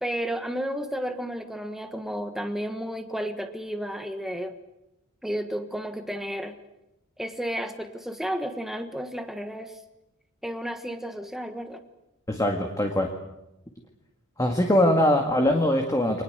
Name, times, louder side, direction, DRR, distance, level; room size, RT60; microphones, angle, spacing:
voice 1, 0.0-4.5 5.2-6.6 7.2-9.8 10.4-11.8, equal, ahead, 6 dB, 1.4 m, -32 dB
voice 2, 12.3-13.1 14.4-16.2, left 1 dB, 15° left, 3 dB, 2.0 m, -22 dB
25.5 x 20.0 x 8.1 m, 0.88 s
head